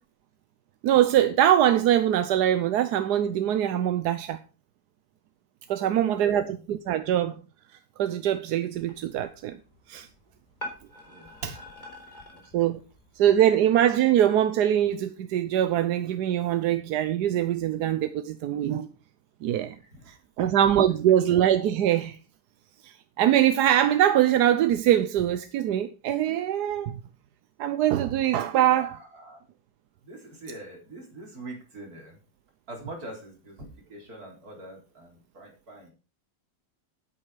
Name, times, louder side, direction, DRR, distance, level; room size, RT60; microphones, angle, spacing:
voice 1, 0.8-4.4 5.7-7.4 8.0-9.6 9.9-10.1 12.5-12.8 13.2-18.9 19.4-19.7 20.1-22.2 22.8-22.9 23.2-27.0 27.6-29.0, right 11 dB, 70° right, 1.2 m, -23 dB
voice 2, 5.8-6.6 11.0-11.3 12.3-12.7 19.7-20.5 28.6-29.4 30.0-32.2 32.7-35.9, right 1 dB, 55° right, 4.4 m, -44 dB
sound 1, 8.7-13.9, left 1 dB, 25° left, 3.5 m, -46 dB
9.8 x 8.8 x 5.0 m
omnidirectional pair, 1.9 m